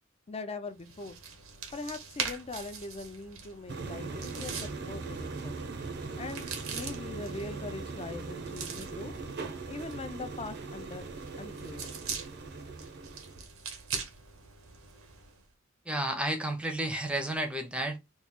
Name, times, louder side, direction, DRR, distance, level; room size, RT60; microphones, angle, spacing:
voice 1, 0.3-1.2 1.7-5.6 6.2-9.1 9.7-11.1 11.4-11.9, left 3 dB, 30° left, 0.5 m, -41 dB
sound 1, 0.8-15.4, right 6 dB, 80° right, 0.9 m, -43 dB
sound 2, 3.7-13.4, right 3 dB, 55° right, 0.7 m, -40 dB
voice 2, 15.9-18.0, right 1 dB, 5° right, 0.7 m, -31 dB
3.1 x 2.4 x 3.5 m
head